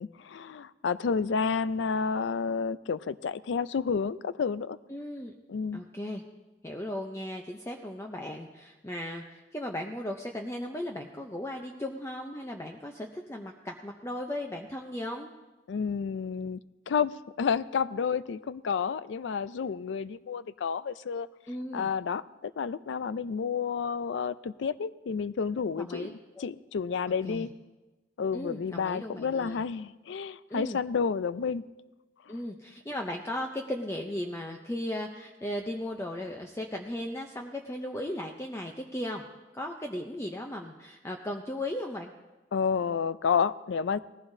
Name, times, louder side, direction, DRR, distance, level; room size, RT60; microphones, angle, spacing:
voice 1, 0.0-4.8 5.5-5.8 15.7-16.6 16.9-21.3 21.7-27.5 28.2-31.6 42.5-44.0, left 6 dB, 70° left, 17 dB, 0.4 m, -30 dB
voice 2, 4.9-5.3 5.7-6.2 6.6-15.3 21.5-21.9 25.8-26.1 26.4-26.5 27.2-27.5 28.3-29.6 30.5-30.8 32.3-39.2 39.5-42.1, left 1 dB, 15° left, 2 dB, 0.5 m, -36 dB
19.0 x 15.0 x 2.7 m, 1.1 s
head